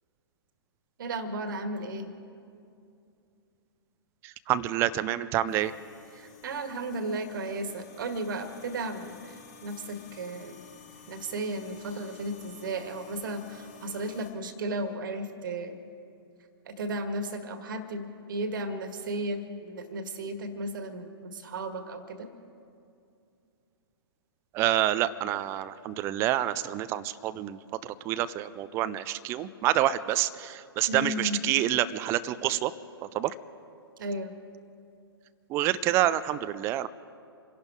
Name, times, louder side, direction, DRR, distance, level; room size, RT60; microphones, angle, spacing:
voice 1, 1.0-2.1 6.2-9.4 9.6-10.6 11.1-15.7 16.6-22.3 30.9-31.4 34.0-34.3, right 1 dB, 50° right, 9 dB, 1.6 m, -34 dB
voice 2, 4.2-5.7 24.5-32.7 33.0-33.3 35.5-36.9, right 13 dB, 20° right, 14 dB, 0.4 m, -28 dB
sound 1, 5.5-14.3, left 7 dB, 40° left, 2.5 m, -52 dB
26.5 x 11.5 x 4.9 m, 2.5 s
figure-of-eight pair, 115°, 13 cm